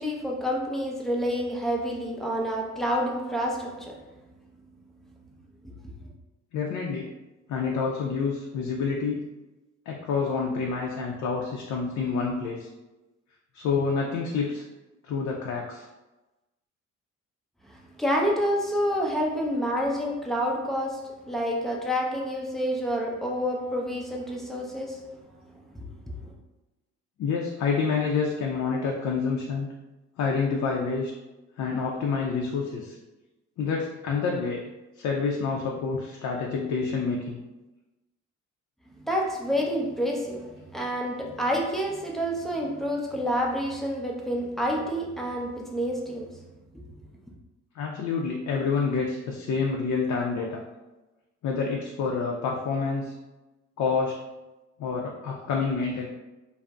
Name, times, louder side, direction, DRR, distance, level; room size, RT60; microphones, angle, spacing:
voice 1, 0.0-4.0 17.7-25.2 25.7-25.8 26.2-26.3 39.0-46.4 46.7-46.8, equal, ahead, 0.5 m, -28 dB
voice 2, 6.5-7.1 7.5-9.3 9.9-12.7 13.5-14.6 15.0-15.9 27.2-29.7 30.2-31.1 31.6-33.0 33.6-34.6 35.0-37.4 47.7-50.6 51.4-53.1 53.8-54.2 54.8-56.1, left 5 dB, 70° left, 0.5 m, -28 dB
2.5 x 2.0 x 3.3 m
cardioid pair, 90°, 30 cm